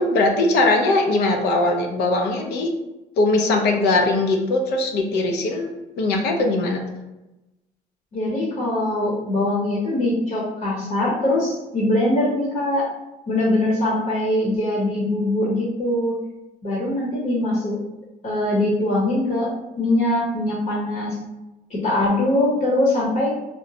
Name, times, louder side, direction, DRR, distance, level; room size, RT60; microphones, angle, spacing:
voice 1, 0.0-2.7 3.2-5.7 6.0-6.8, left 2 dB, 80° left, 3 dB, 0.6 m, -20 dB
voice 2, 8.1-12.8 13.3-16.1 16.6-17.8 18.2-19.5 19.8-21.2 21.7-23.3, left 1 dB, 45° left, -4 dB, 0.8 m, -22 dB
2.9 x 2.0 x 2.7 m, 0.98 s
cardioid pair, 110°, 17 cm